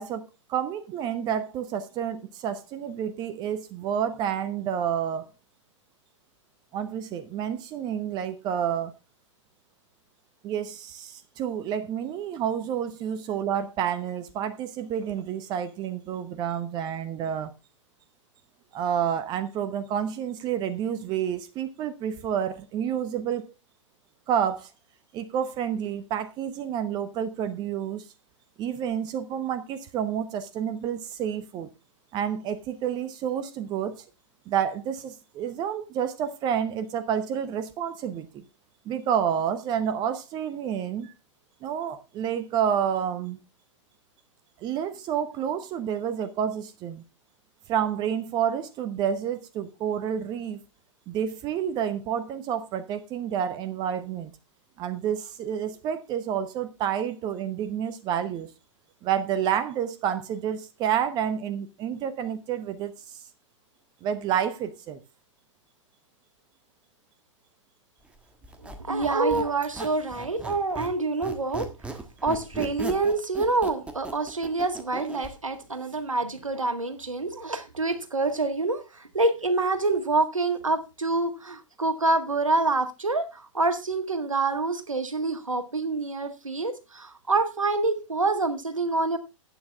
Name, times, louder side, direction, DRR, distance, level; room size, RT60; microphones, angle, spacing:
voice 1, 0.0-5.3 6.7-8.9 10.4-17.5 18.7-23.5 24.3-24.7 25.1-28.1 28.6-31.7 32.1-34.1 34.5-38.4 38.8-41.1 41.6-43.4 44.6-47.0 47.7-50.6 51.1-54.3 54.8-58.5 59.0-63.2 64.0-65.0, right 9 dB, 25° right, 1.0 m, -29 dB
Squeak, 68.4-71.0 71.2-75.3, right 2 dB, 5° right, 1.4 m, -38 dB
voice 2, 68.6-89.2, right 3 dB, 85° right, 1.8 m, -27 dB
11.5 x 8.9 x 3.5 m
figure-of-eight pair, 110°, 16 cm